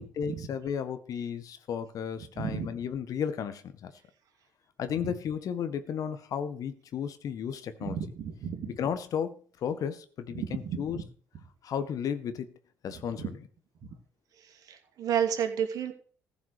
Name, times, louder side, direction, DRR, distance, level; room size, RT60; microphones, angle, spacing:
voice 1, 0.0-3.9 4.8-8.0 8.7-9.3 9.6-11.0 11.6-12.5 12.8-13.5, left 8 dB, 55° left, 11 dB, 1.5 m, -34 dB
voice 2, 7.8-8.7 10.3-10.8 14.7-15.9, right 8 dB, 55° right, 5 dB, 2.6 m, -31 dB
15.0 x 5.9 x 6.7 m, 0.42 s
hypercardioid pair, 50°, 7 cm